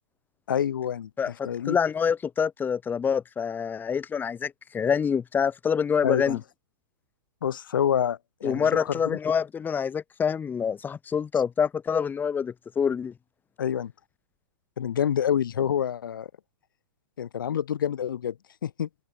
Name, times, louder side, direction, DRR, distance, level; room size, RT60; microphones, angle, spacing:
voice 1, 0.5-1.8 6.0-6.4 7.4-9.2 13.6-13.9 14.8-16.3 17.2-18.4 18.6-18.9, left 9 dB, 70° left, 2.4 m, -27 dB
voice 2, 1.2-6.4 8.4-13.1, left 7 dB, 15° left, 4.8 m, -26 dB
open air
hypercardioid pair, 120°, 11 cm